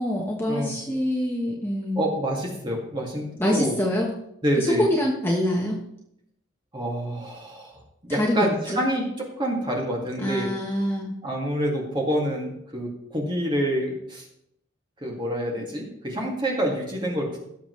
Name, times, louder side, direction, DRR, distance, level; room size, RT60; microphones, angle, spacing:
voice 1, 0.0-2.1 3.4-4.1 4.6-5.8 8.1-8.5 8.7-8.8 10.2-11.1, equal, 10° left, -2 dB, 1.2 m, -25 dB
voice 2, 2.0-3.8 4.4-4.9 6.7-7.7 8.0-10.5 11.2-14.2 15.0-17.4, equal, 20° right, -2 dB, 2.3 m, -27 dB
17.0 x 7.1 x 3.3 m, 0.76 s
head